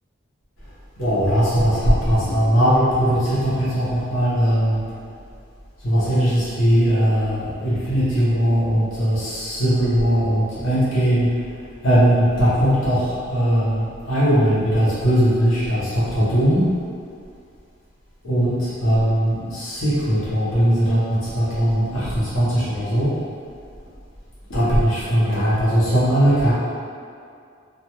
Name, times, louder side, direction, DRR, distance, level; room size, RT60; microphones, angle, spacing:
voice 1, 1.0-4.8 5.8-11.5 11.8-16.8 18.2-23.1 24.5-26.5, equal, 80° left, -10 dB, 0.9 m, -19 dB
2.4 x 2.3 x 2.9 m, 2.3 s
head